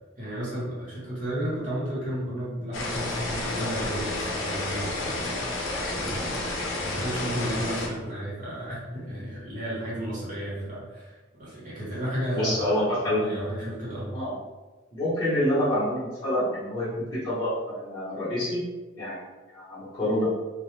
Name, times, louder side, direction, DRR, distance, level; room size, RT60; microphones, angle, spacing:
voice 1, 0.2-5.6 5.9-14.2, equal, 40° right, -7 dB, 0.9 m, -33 dB
sound 1, 2.7-7.9, left 2 dB, 80° left, 0.5 m, -31 dB
voice 2, 12.4-13.3 14.1-14.3 14.9-18.6 19.0-19.2 19.5-20.3, left 1 dB, 20° left, -12 dB, 0.8 m, -27 dB
2.2 x 2.0 x 3.1 m, 1.2 s
head